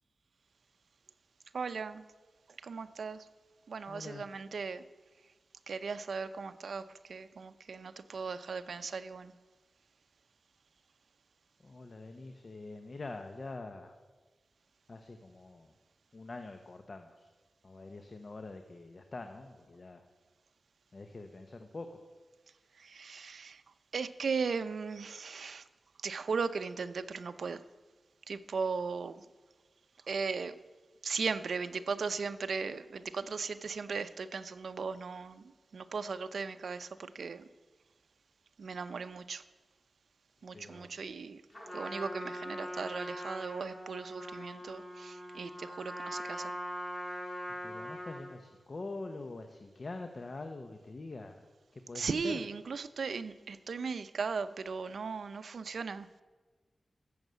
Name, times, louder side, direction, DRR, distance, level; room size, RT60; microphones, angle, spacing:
voice 1, 1.5-2.0 2.6-3.3 3.7-4.8 5.7-9.3 22.7-23.6 23.9-25.6 26.0-27.6 28.3-29.3 30.1-30.5 31.0-37.5 38.6-39.4 40.4-41.4 41.7-46.5 51.9-56.1, right 5 dB, 80° right, 11 dB, 0.6 m, -37 dB
voice 2, 3.9-4.2 11.6-13.9 14.9-15.7 16.1-17.3 17.6-20.0 20.9-22.0 40.5-40.9 47.6-51.4 51.7-52.4, left 3 dB, 50° left, 6 dB, 1.0 m, -45 dB
Trumpet, 41.5-48.3, equal, 25° left, 5.8 m, -41 dB
14.5 x 7.2 x 8.1 m, 1.3 s
wide cardioid pair, 80°, 0 cm